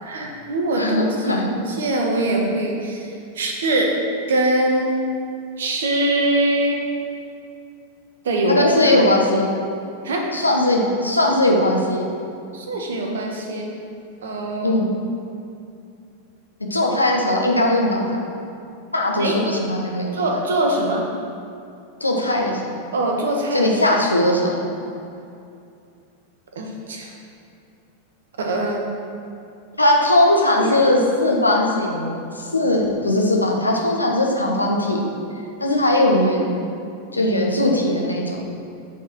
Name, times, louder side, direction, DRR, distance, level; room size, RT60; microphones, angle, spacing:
voice 1, 0.0-1.3 1.7-3.1 3.3-3.9 4.3-4.9 5.6-6.8 8.2-8.9 10.0-10.2 12.5-13.7 14.2-14.7 19.2-19.3 20.1-21.0 22.9-23.7 26.5-27.1 28.4-28.8 30.6-30.8, right 1 dB, 65° right, 1 dB, 1.3 m, -22 dB
voice 2, 0.8-1.5 8.5-9.5 10.3-12.1 14.6-14.9 16.7-18.2 18.9-20.1 22.0-22.9 23.5-24.5 29.8-35.0 35.6-36.6 37.1-38.4, left 1 dB, 85° left, -1 dB, 1.2 m, -19 dB
8.4 x 4.7 x 6.1 m, 2.5 s
figure-of-eight pair, 90°, 0 cm